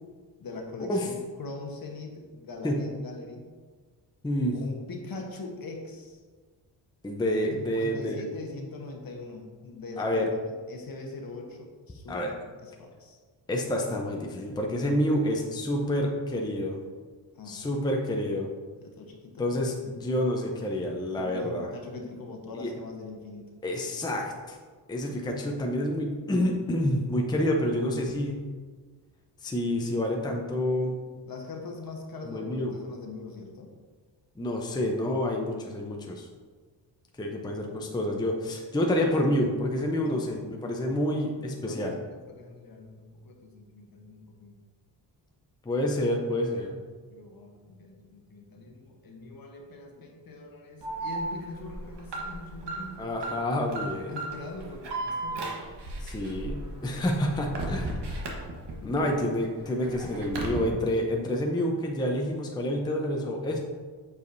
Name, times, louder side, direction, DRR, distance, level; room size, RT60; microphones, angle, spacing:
voice 1, 0.4-3.5 4.5-6.2 7.5-13.2 17.3-17.7 18.8-19.5 21.2-23.4 31.3-33.7 39.9-40.6 41.6-44.6 47.1-53.1 54.0-55.5 58.8-59.2, left 3 dB, 50° left, 2 dB, 1.1 m, -42 dB
voice 2, 4.2-4.6 7.0-8.2 10.0-10.2 12.1-12.3 13.5-16.8 17.5-18.5 19.4-21.7 22.6-22.7 23.6-24.6 24.9-28.4 29.4-31.0 32.2-32.8 34.4-36.3 37.2-41.9 45.6-46.8 53.0-54.2 56.0-58.3 58.8-63.6, left 1 dB, 10° left, 0 dB, 0.7 m, -28 dB
Alarm, 50.8-59.0 59.4-60.6, right 2 dB, 65° right, 1.3 m, -35 dB
8.1 x 4.9 x 2.6 m, 1.5 s
cardioid pair, 95°, 45 cm